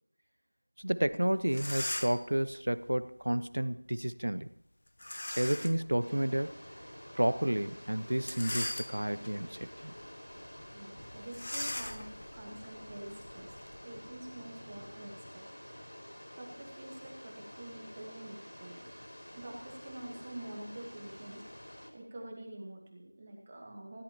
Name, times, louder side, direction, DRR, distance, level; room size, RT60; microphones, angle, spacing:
voice 1, 0.8-4.5 5.3-6.5 7.1-9.9, right 1 dB, 50° right, 14 dB, 1.0 m, -31 dB
sound 1, 1.1-1.2 1.5-2.3 5.0-5.9 6.4-6.5 8.1-9.3 9.8-10.1 10.3-10.4 11.3-13.8, left 1 dB, 30° left, 0.7 m, -39 dB
sound 2, 6.0-21.9, equal, 55° left, 5.0 m, -49 dB
voice 2, 10.7-15.5 16.4-18.8 19.3-21.4 21.9-24.0, right 1 dB, 10° right, -1 dB, 1.4 m, -47 dB
19.5 x 17.0 x 2.9 m, 0.76 s
figure-of-eight pair, 180°, 0 cm